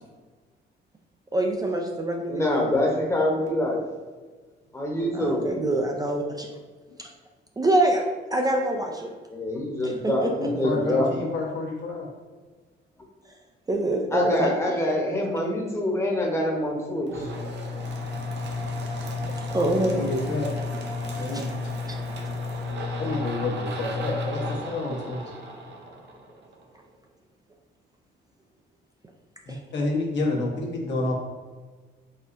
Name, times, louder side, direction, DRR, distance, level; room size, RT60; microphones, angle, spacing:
voice 1, 1.3-2.6 5.1-6.5 7.0-7.1 7.6-8.0 8.3-9.1 9.8-10.5 13.7-14.5 19.0-19.1 19.5-20.0 21.3-21.4 29.5-29.6, right 1 dB, 20° right, 1 dB, 0.4 m, -25 dB
voice 2, 2.3-3.8 4.7-5.5 9.3-11.1 14.1-17.3, left 1 dB, 15° left, -2 dB, 1.0 m, -25 dB
voice 3, 10.4-12.1 19.9-20.5 21.2-21.5 22.9-25.2 29.5-31.1, left 2 dB, 65° left, -2 dB, 1.1 m, -29 dB
sound 1, 17.1-26.6, left 2 dB, 65° right, 0.8 m, -32 dB
4.2 x 3.5 x 2.6 m, 1.4 s
cardioid pair, 90°, 20 cm